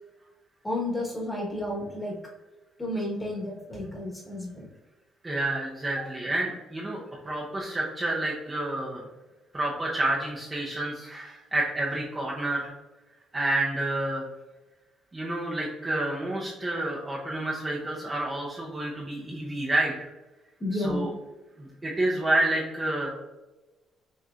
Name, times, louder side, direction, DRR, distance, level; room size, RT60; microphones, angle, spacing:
voice 1, 0.6-2.2 2.8-4.7 20.6-21.1, left 1 dB, 10° left, -3 dB, 1.2 m, -31 dB
voice 2, 5.2-7.0 7.2-9.1 9.5-12.7 13.3-14.3 15.1-19.9 20.7-21.1 21.6-23.1, right 2 dB, 15° right, -4 dB, 0.6 m, -29 dB
6.3 x 3.1 x 2.4 m, 1.1 s
cardioid pair, 170°, 0 cm